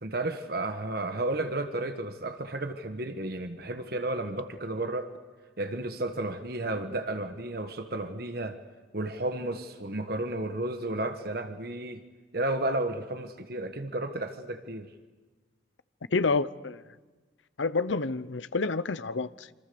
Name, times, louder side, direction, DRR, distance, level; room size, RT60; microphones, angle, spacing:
voice 1, 0.0-5.1 5.6-8.6 8.9-12.0 12.3-14.9, right 2 dB, 55° right, 8 dB, 1.4 m, -32 dB
voice 2, 16.1-16.8 17.6-19.5, left 3 dB, 80° left, 15 dB, 0.8 m, -28 dB
27.0 x 25.5 x 7.0 m, 1.3 s
head